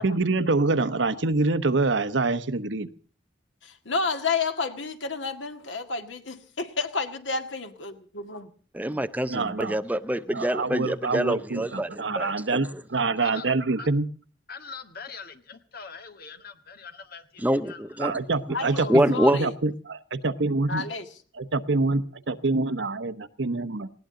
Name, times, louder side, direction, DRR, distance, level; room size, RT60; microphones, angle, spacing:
voice 1, 0.0-2.9 9.3-9.8 10.3-14.1 18.0-20.8 21.3-23.9, right 3 dB, 75° right, 11 dB, 1.0 m, -26 dB
voice 2, 3.6-8.5 18.5-19.5 20.7-21.1, left 4 dB, 85° left, 7 dB, 1.9 m, -31 dB
voice 3, 8.7-11.9 12.2-12.6 17.4-18.1 18.9-19.4, right 1 dB, 10° right, 11 dB, 0.6 m, -25 dB
voice 4, 14.5-18.0, left 5 dB, 55° left, 8 dB, 1.7 m, -43 dB
19.5 x 17.5 x 3.9 m, 0.41 s
head